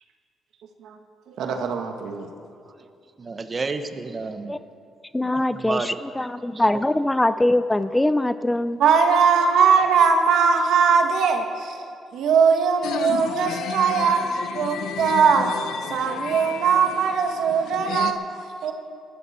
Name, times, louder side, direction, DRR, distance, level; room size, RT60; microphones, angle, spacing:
voice 1, 1.3-2.3 8.8-11.8 12.1-15.5 15.9-18.7, right 6 dB, 80° right, 5 dB, 1.5 m, -20 dB
voice 2, 3.2-4.6 5.3-6.0 6.5-6.8, right 4 dB, 35° right, 8 dB, 1.0 m, -31 dB
voice 3, 5.1-8.8, left 1 dB, 10° left, 13 dB, 0.5 m, -22 dB
sound 1, 12.8-18.1, left 8 dB, 80° left, 0.7 m, -32 dB
20.0 x 13.0 x 4.4 m, 2.4 s
cardioid pair, 90°, 0 cm